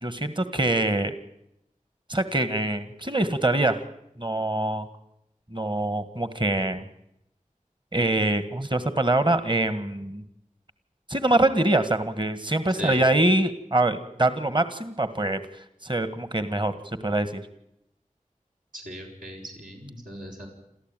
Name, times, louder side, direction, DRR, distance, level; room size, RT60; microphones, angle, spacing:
voice 1, 0.0-1.1 2.1-3.8 4.2-4.8 5.5-6.8 7.9-10.2 11.1-15.4 15.8-16.7 17.0-17.4, right 2 dB, 35° right, 11 dB, 1.7 m, -24 dB
voice 2, 12.7-13.0 18.7-20.5, right 1 dB, 80° right, -2 dB, 6.4 m, -38 dB
28.5 x 14.0 x 9.1 m, 0.79 s
wide cardioid pair, 45°, 14 cm